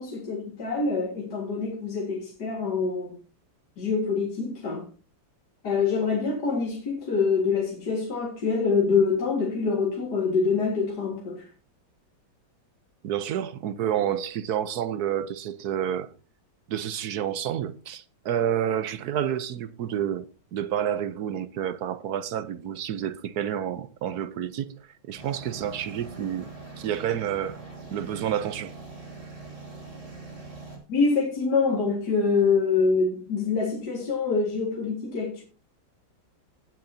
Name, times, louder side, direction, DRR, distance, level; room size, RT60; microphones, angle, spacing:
voice 1, 0.0-3.2 3.8-4.9 5.6-11.4 30.9-35.4, left 4 dB, 55° left, 2.4 m, -25 dB
voice 2, 13.0-16.1 16.7-20.2 20.5-24.8 25.1-26.5 26.8-27.6 27.9-28.7, right 9 dB, 65° right, 1.1 m, -29 dB
sound 1, 25.2-30.8, right 3 dB, 15° right, 2.9 m, -43 dB
18.0 x 7.7 x 2.7 m
omnidirectional pair, 2.1 m